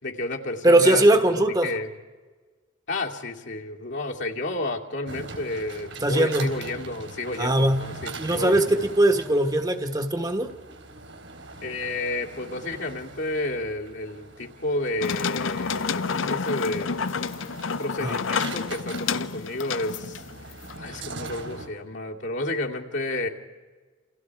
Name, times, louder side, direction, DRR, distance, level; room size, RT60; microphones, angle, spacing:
voice 1, 0.0-1.9 2.9-8.9 11.6-17.1 17.8-20.2 20.8-23.3, left 2 dB, 65° left, 0 dB, 2.6 m, -31 dB
voice 2, 0.6-1.7 6.0-6.5 7.4-7.9 8.2-10.5 18.0-18.1, right 1 dB, 20° right, 7 dB, 1.4 m, -20 dB
sound 1, 5.1-21.7, right 3 dB, 75° right, 4.0 m, -42 dB
sound 2, 15.0-20.7, left 5 dB, 85° left, 0.7 m, -29 dB
29.0 x 28.5 x 4.8 m, 1.4 s
head